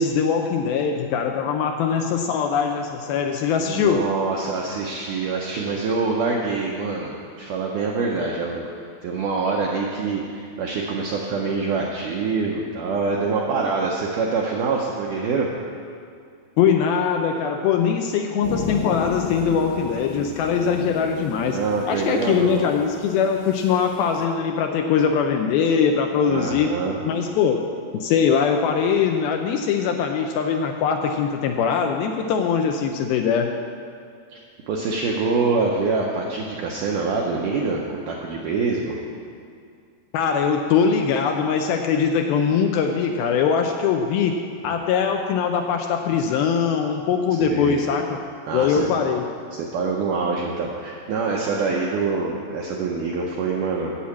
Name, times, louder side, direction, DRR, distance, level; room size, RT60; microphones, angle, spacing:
voice 1, 0.0-4.0 16.6-21.6 21.9-26.7 27.0-27.6 27.9-33.5 40.1-44.4 44.6-48.1 48.5-49.3, left 6 dB, 80° left, 4 dB, 2.2 m, -21 dB
voice 2, 3.6-8.7 9.0-15.5 20.6-22.7 26.3-27.0 34.3-34.4 34.7-39.0 47.4-47.8 48.5-48.9 49.5-53.9, right 4 dB, 80° right, -1 dB, 1.8 m, -25 dB
sound 1, 18.4-24.2, left 4 dB, 65° left, 2.9 m, -34 dB
8.6 x 7.4 x 8.3 m, 2.3 s
omnidirectional pair, 4.7 m